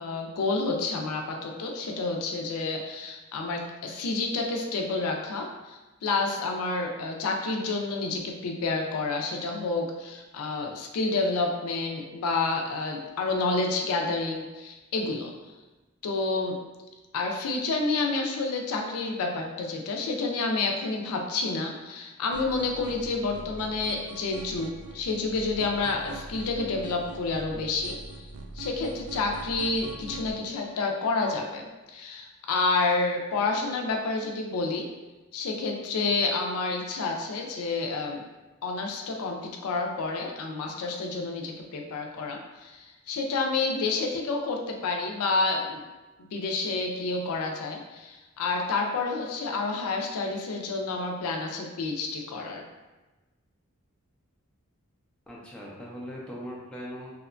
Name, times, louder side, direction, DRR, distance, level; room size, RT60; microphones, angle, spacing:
voice 1, 0.0-15.3 16.0-16.6 17.1-34.9 35.3-38.3 38.6-45.8 46.2-52.6, left 3 dB, 80° left, 2 dB, 0.4 m, -29 dB
sound 1, 22.3-30.3, right 3 dB, 75° right, 0.3 m, -43 dB
voice 2, 55.3-57.2, equal, 5° left, -5 dB, 0.3 m, -40 dB
2.8 x 2.2 x 2.4 m, 1.1 s
head